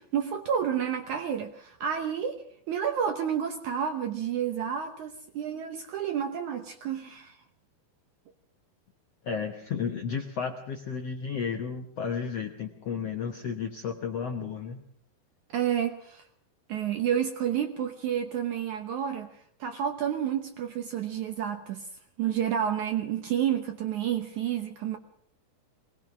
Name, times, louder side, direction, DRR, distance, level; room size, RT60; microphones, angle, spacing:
voice 1, 0.0-7.4 15.5-16.3 16.7-19.3 19.6-21.9 22.2-25.0, right 9 dB, 70° right, 6 dB, 1.9 m, -30 dB
voice 2, 9.2-14.8, left 6 dB, 70° left, 4 dB, 1.5 m, -33 dB
22.0 x 19.5 x 6.0 m, 0.64 s
omnidirectional pair, 4.6 m